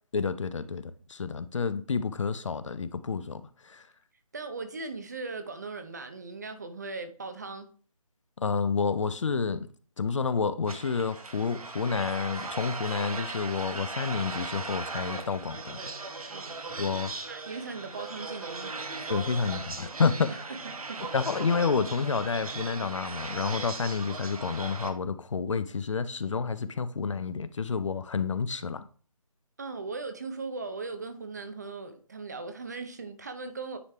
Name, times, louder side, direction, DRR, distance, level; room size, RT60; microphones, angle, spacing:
voice 1, 0.1-3.8 8.4-9.7 10.0-15.8 16.8-17.1 19.1-20.3 21.1-28.8, left 5 dB, 55° left, 0.5 m, -29 dB
voice 2, 4.3-7.7 16.3-16.5 17.3-18.8 20.3-20.6 20.9-21.0 29.6-33.8, right 4 dB, 30° right, 0.5 m, -38 dB
sound 1, 10.7-24.9, right 3 dB, 75° right, 1.0 m, -38 dB
9.6 x 3.2 x 3.3 m
figure-of-eight pair, 160°, 19 cm